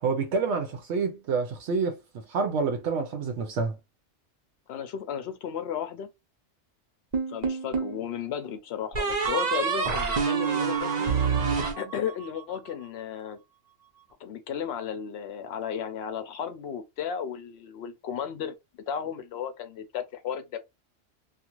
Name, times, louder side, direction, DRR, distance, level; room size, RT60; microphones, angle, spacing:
voice 1, 0.0-3.8, right 4 dB, 75° right, 0.9 m, -28 dB
voice 2, 4.7-6.1 7.3-11.1 11.8-13.4 14.2-18.6 18.9-20.6, left 8 dB, 70° left, 0.8 m, -34 dB
sound 1, 7.1-8.0 8.9-12.4, right 5 dB, 40° right, 0.7 m, -27 dB
2.4 x 2.4 x 2.9 m
omnidirectional pair, 1.2 m